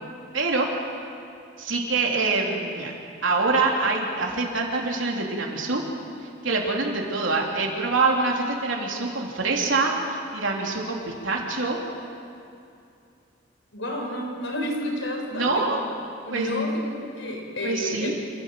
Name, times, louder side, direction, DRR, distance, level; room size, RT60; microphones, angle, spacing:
voice 1, 0.3-0.7 1.6-2.9 3.2-5.8 6.4-11.8 15.3-15.8 16.3-16.5 17.6-18.1, right 3 dB, 85° right, -1 dB, 3.4 m, -25 dB
voice 2, 13.7-15.7 16.2-18.1, left 1 dB, 85° left, 1 dB, 4.9 m, -30 dB
27.5 x 15.5 x 7.6 m, 2.6 s
head